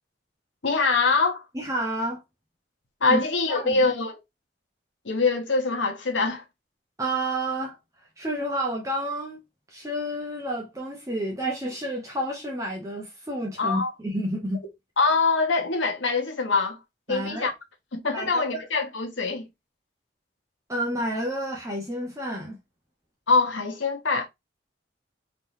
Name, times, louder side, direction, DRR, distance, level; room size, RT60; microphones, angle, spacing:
voice 1, 0.6-1.4 3.0-4.2 5.0-6.4 13.6-13.9 15.0-16.8 17.1-17.5 17.9-19.5 23.3-24.3, left 4 dB, 85° left, 1.1 m, -24 dB
voice 2, 1.5-2.2 3.1-3.2 3.5-3.8 7.0-7.8 8.2-9.4 9.7-14.6 17.1-17.5 18.1-18.6 20.7-22.6, right 1 dB, 15° right, 0.8 m, -30 dB
3.7 x 3.0 x 2.6 m
head